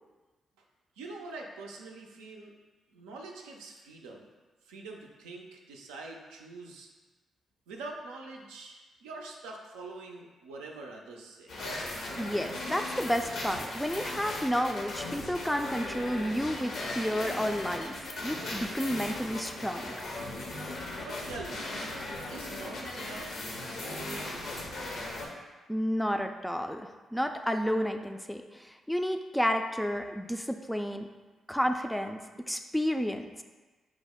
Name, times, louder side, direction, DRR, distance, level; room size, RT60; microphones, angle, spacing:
voice 1, 1.0-2.5 2.9-4.3 4.6-6.9 7.7-11.5 21.0-21.6 22.3-24.5, right 3 dB, 85° right, 0 dB, 0.4 m, -44 dB
sound 1, 11.5-25.3, left 2 dB, 70° left, 0.7 m, -38 dB
voice 2, 12.2-19.9 25.7-31.1 31.5-33.3, equal, 5° left, 5 dB, 0.3 m, -31 dB
4.7 x 2.0 x 3.5 m, 1.3 s
hypercardioid pair, 40°, 0 cm